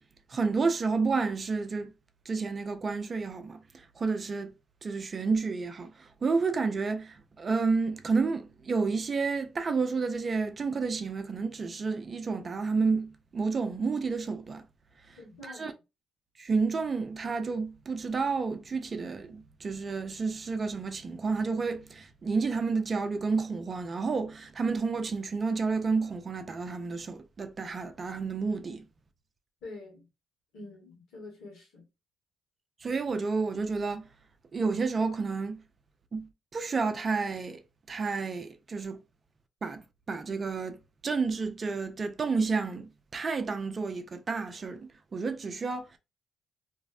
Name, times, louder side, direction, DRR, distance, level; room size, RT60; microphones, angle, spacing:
voice 1, 0.3-1.9 2.3-4.5 4.8-14.6 15.4-15.7 16.4-28.8 32.8-34.1 34.5-35.6 36.1-37.6 37.9-39.0 39.6-46.0, right 4 dB, 40° right, 0.5 m, -30 dB
voice 2, 15.2-15.7 29.6-30.1 30.5-31.9, left 2 dB, 75° left, 1.3 m, -46 dB
2.6 x 2.0 x 2.5 m
hypercardioid pair, 50°, 0 cm